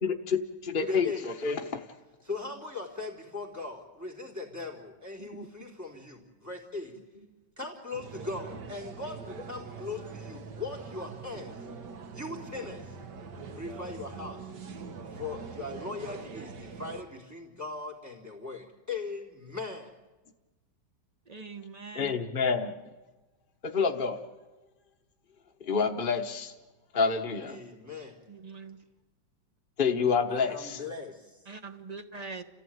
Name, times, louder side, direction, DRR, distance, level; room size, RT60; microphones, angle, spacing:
voice 1, 0.0-1.6 5.2-5.5 21.9-22.7 23.6-24.2 25.6-26.5 26.9-27.6 29.8-30.8, left 5 dB, 35° left, 2 dB, 1.1 m, -28 dB
voice 2, 0.8-1.8 2.2-7.0 7.6-11.6 12.1-13.0 13.6-14.4 15.1-19.9 27.4-28.1 30.3-31.3, left 3 dB, 10° right, -2 dB, 3.8 m, -39 dB
sound 1, 7.9-17.0, right 5 dB, 70° right, 1.9 m, -43 dB
voice 3, 21.3-22.2 28.3-28.8 31.4-32.4, right 4 dB, 30° right, 8 dB, 0.9 m, -42 dB
29.5 x 15.0 x 9.3 m, 1.2 s
omnidirectional pair, 1.9 m